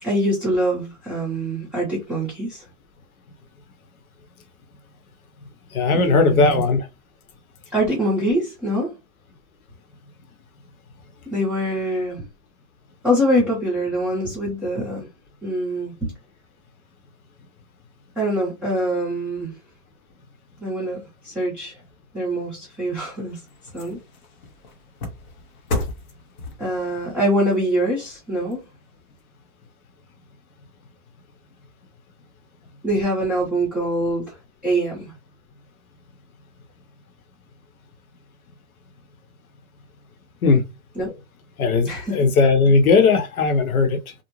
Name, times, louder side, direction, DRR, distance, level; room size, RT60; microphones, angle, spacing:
voice 1, 0.0-2.6 5.9-6.6 7.7-9.0 11.3-12.2 13.0-15.1 15.4-16.1 18.2-19.5 20.6-21.8 22.1-23.4 23.7-24.0 26.6-28.6 32.8-34.4 34.6-35.1 41.0-41.1 41.8-42.2, equal, 5° right, 0.6 m, -24 dB
voice 2, 5.7-6.8 40.4-40.6 41.6-44.1, left 4 dB, 70° left, 0.9 m, -18 dB
sound 1, 22.7-29.2 29.7-29.8, left 2 dB, 35° left, 0.7 m, -35 dB
2.6 x 2.0 x 3.0 m
hypercardioid pair, 145°, 44 cm